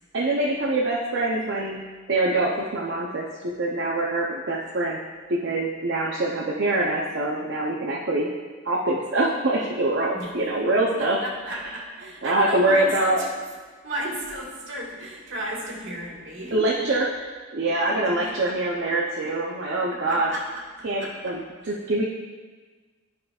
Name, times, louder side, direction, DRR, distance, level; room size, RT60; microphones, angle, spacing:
voice 1, 0.1-5.0 5.3-8.3 8.6-11.7 12.2-13.3 16.5-17.1 17.5-20.3 20.8-22.0, right 2 dB, 60° right, -3 dB, 0.6 m, -24 dB
voice 2, 11.0-13.2 13.8-16.5 18.0-18.4 19.9-20.4 21.0-21.1, right 1 dB, 75° right, -4 dB, 1.7 m, -34 dB
11.0 x 5.1 x 2.4 m, 1.4 s
head